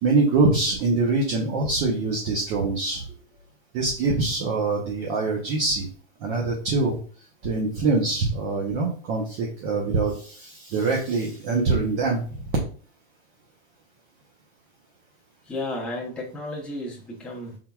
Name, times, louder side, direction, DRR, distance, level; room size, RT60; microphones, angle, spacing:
voice 1, 0.0-3.0 3.7-5.9 6.2-7.0 7.4-12.2, right 3 dB, 40° right, -1 dB, 0.8 m, -24 dB
voice 2, 15.5-17.6, left 1 dB, 5° left, -5 dB, 0.8 m, -33 dB
4.4 x 3.8 x 2.3 m, 0.41 s
supercardioid pair, 165°, 29 cm